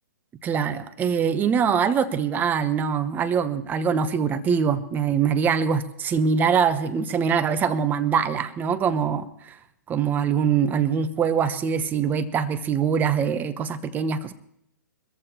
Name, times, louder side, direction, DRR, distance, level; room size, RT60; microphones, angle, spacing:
voice 1, 0.4-9.6 9.9-14.3, right 7 dB, 15° right, 11 dB, 0.9 m, -23 dB
23.0 x 14.0 x 3.0 m, 0.72 s
figure-of-eight pair, 125°, 11 cm